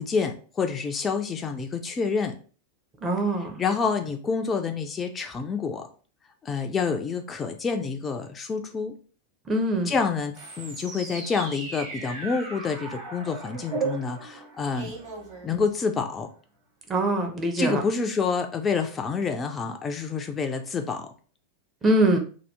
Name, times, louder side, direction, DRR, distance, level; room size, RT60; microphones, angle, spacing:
voice 1, 0.0-2.4 3.4-5.9 6.4-9.0 9.8-14.9 15.4-16.3 17.6-21.1, left 5 dB, 20° left, 5 dB, 0.4 m, -28 dB
voice 2, 3.0-3.6 9.5-9.9 16.9-17.8 21.8-22.2, right 1 dB, 20° right, 3 dB, 0.7 m, -23 dB
sound 1, 10.3-16.0, right 4 dB, 45° right, 1.3 m, -36 dB
2.8 x 2.3 x 3.3 m, 0.39 s
figure-of-eight pair, 90°, 0 cm